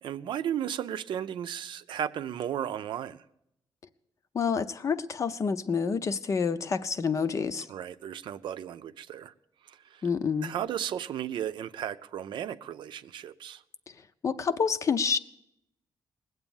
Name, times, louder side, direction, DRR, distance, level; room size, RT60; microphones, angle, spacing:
voice 1, 0.0-3.2 7.7-9.3 9.6-10.0 10.4-13.6, right 10 dB, 85° right, 0.5 m, -35 dB
voice 2, 4.3-7.7 10.0-10.5 14.2-15.2, left 5 dB, 40° left, 0.6 m, -28 dB
19.5 x 8.0 x 7.1 m
wide cardioid pair, 145°, 8 cm